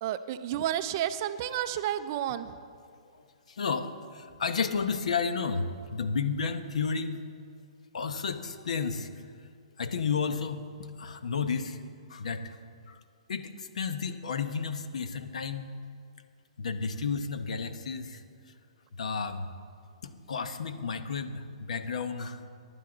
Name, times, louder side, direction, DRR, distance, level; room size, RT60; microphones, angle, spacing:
voice 1, 0.0-2.5, right 11 dB, 30° right, 11 dB, 0.4 m, -31 dB
voice 2, 3.5-7.2 7.9-9.1 9.8-11.8 12.1-12.6 12.9-13.0 13.3-15.7 16.6-18.2 19.0-19.5 20.0-22.4, left 5 dB, 75° left, 9 dB, 0.8 m, -32 dB
15.5 x 11.0 x 3.9 m, 2.2 s
hypercardioid pair, 165°, 4 cm